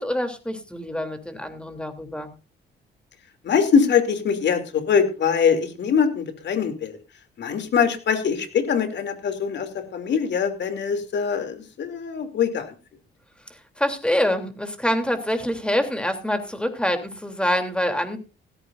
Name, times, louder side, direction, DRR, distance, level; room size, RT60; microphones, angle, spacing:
voice 1, 0.0-2.3 13.5-18.2, left 1 dB, 5° left, 6 dB, 3.2 m, -26 dB
voice 2, 3.4-7.0 7.4-12.7, left 6 dB, 65° left, 7 dB, 3.0 m, -23 dB
16.5 x 14.5 x 2.6 m, 0.30 s
cardioid pair, 90°, 20 cm